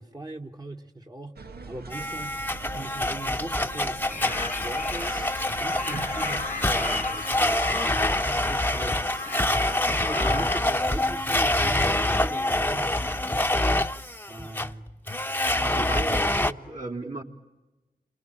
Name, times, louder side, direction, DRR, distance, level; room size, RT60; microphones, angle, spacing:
voice 1, 0.0-1.4 1.7-2.4 2.7-4.0 4.5-5.2 5.6-13.5 14.3-14.9 15.3-15.5, right 2 dB, 25° right, 3 dB, 1.4 m, -40 dB
sound 1, 1.4-7.2, right 3 dB, 85° right, 1.3 m, -42 dB
Domestic sounds home sounds, 1.9-16.5, left 1 dB, 10° left, 0.9 m, -26 dB
sound 2, 4.1-10.6, left 4 dB, 60° left, 1.0 m, -38 dB
voice 2, 15.5-17.2, right 2 dB, 55° right, -2 dB, 3.1 m, -35 dB
30.0 x 21.5 x 8.8 m, 1.1 s
wide cardioid pair, 60°, 16 cm